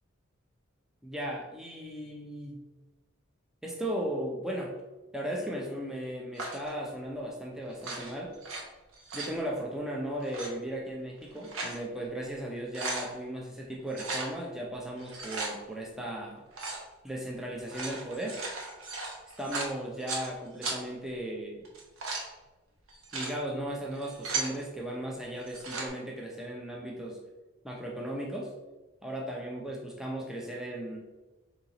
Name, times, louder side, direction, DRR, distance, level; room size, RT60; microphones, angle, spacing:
voice 1, 1.0-2.6 3.6-4.7 5.1-8.3 9.1-16.4 17.0-18.4 19.4-21.6 23.1-27.2 27.6-28.5 29.0-31.0, right 1 dB, ahead, -2 dB, 0.5 m, -36 dB
sound 1, 6.3-6.7 7.7-8.6 8.9-9.4 10.2-10.5 11.2-11.8 12.2-12.3 12.6-13.1 13.9-14.3 15.0-15.5 16.5-16.8 17.6-20.3 20.6-20.8 21.6-22.3 22.9-23.3 23.9-24.5 25.4-25.9, right 3 dB, 85° right, 0.9 m, -36 dB
4.3 x 2.8 x 3.9 m, 1.1 s
head